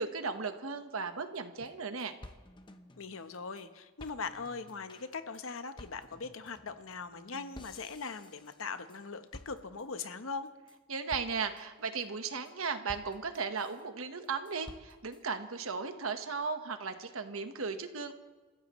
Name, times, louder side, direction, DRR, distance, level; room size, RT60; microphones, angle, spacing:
voice 1, 0.0-2.1 10.9-18.1, right 5 dB, 90° right, 8 dB, 1.2 m, -36 dB
sound 1, 1.3-1.4 1.7-1.8 2.0-3.7 4.0-9.0 9.3-10.0 10.5-10.8 11.1-11.6 12.0-12.5 12.9-13.8 14.2-15.2, left 1 dB, 25° left, 0.8 m, -53 dB
voice 2, 3.0-10.5, left 4 dB, 80° left, 10 dB, 1.0 m, -41 dB
29.5 x 15.0 x 3.1 m, 1.3 s
head